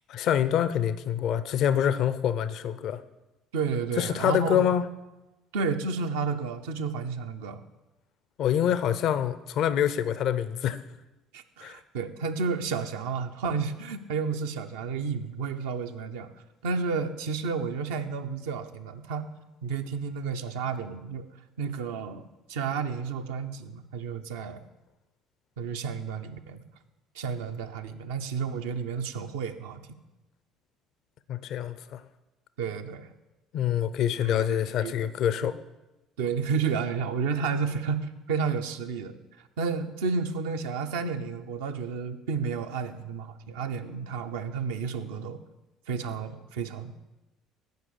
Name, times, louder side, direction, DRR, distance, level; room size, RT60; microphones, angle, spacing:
voice 1, 0.1-3.0 4.0-4.9 8.4-10.8 11.6-11.8 31.3-32.0 33.5-35.6, left 9 dB, 60° left, 14 dB, 0.5 m, -26 dB
voice 2, 3.5-4.7 5.5-7.6 11.3-16.3 16.6-19.3 19.6-21.3 21.6-24.6 25.6-26.6 27.2-29.8 32.6-33.1 34.2-34.9 36.2-39.2 39.6-45.4 45.9-46.9, right 5 dB, 75° right, 7 dB, 0.6 m, -31 dB
8.1 x 5.4 x 6.6 m, 1.0 s
hypercardioid pair, 60°, 0 cm